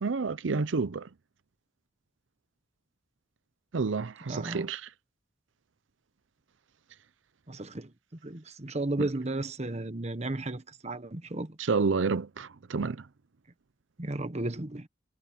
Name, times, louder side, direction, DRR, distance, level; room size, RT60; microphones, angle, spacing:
voice 1, 0.0-1.1 3.7-4.9 9.0-9.1 11.6-13.1, right 4 dB, 80° right, 0.6 m, -29 dB
voice 2, 4.3-4.7 7.5-7.9 8.2-11.6 14.0-14.9, right 2 dB, 35° right, 1.2 m, -34 dB
head